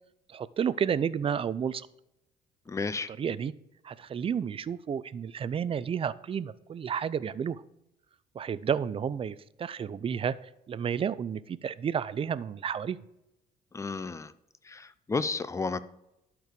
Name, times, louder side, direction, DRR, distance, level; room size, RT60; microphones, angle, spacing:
voice 1, 0.3-1.9 3.1-3.5 3.8-7.6 8.3-13.0, right 7 dB, 35° right, 17 dB, 0.5 m, -31 dB
voice 2, 2.7-3.1 13.7-14.3 14.6-15.8, left 4 dB, 15° left, 15 dB, 0.6 m, -32 dB
12.0 x 4.6 x 6.7 m, 0.86 s
cardioid pair, 110°, 17 cm